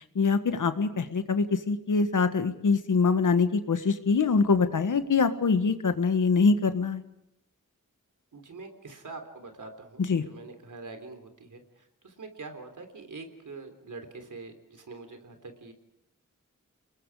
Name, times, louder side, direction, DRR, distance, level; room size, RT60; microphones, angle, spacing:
voice 1, 0.2-7.0 10.0-10.2, left 4 dB, 70° left, 10 dB, 1.6 m, -24 dB
voice 2, 8.3-15.7, right 3 dB, 70° right, 7 dB, 3.6 m, -44 dB
30.0 x 20.5 x 4.9 m, 0.79 s
wide cardioid pair, 80°, 32 cm